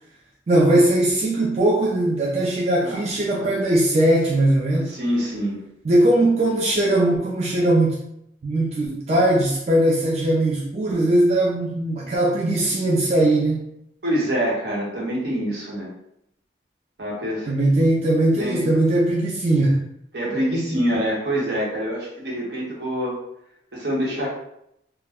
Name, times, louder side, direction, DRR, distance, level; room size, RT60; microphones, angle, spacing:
voice 1, 0.5-4.9 5.8-8.0 8.4-13.6 17.5-19.8, right 1 dB, 35° right, -4 dB, 0.3 m, -19 dB
voice 2, 4.9-5.6 14.0-15.9 17.0-17.5 18.4-18.6 20.1-23.2 23.7-24.3, equal, 70° right, -4 dB, 0.9 m, -25 dB
2.2 x 2.0 x 3.4 m, 0.78 s
head